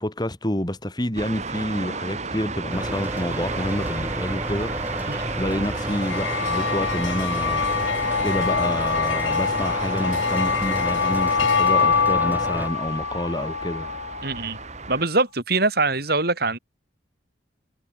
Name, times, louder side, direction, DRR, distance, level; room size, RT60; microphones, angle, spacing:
voice 1, 0.0-7.6 8.2-13.9, left 1 dB, 20° left, 2.8 m, -28 dB
sound 1, 1.2-15.0, right 3 dB, 35° right, 2.9 m, -33 dB
sound 2, 2.7-12.7, right 1 dB, 10° right, 5.7 m, -32 dB
sound 3, 5.8-14.4, left 5 dB, 80° left, 1.0 m, -24 dB
voice 2, 14.2-14.6 14.9-16.6, right 3 dB, 55° right, 4.6 m, -23 dB
head